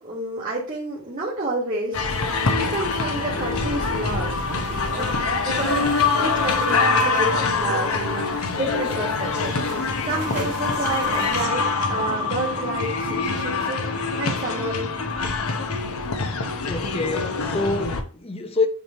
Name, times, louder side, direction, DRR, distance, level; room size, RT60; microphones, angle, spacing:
voice 1, 0.0-2.1 2.5-4.5 4.9-5.1 5.4-15.0, right 2 dB, 35° right, 1.7 m, -30 dB
sound 1, 1.9-18.0, left 4 dB, 75° left, 0.9 m, -24 dB
sound 2, 2.1-11.5, right 5 dB, 85° right, 0.6 m, -39 dB
voice 2, 16.6-18.7, left 3 dB, 25° left, 0.6 m, -26 dB
8.9 x 3.1 x 4.2 m
head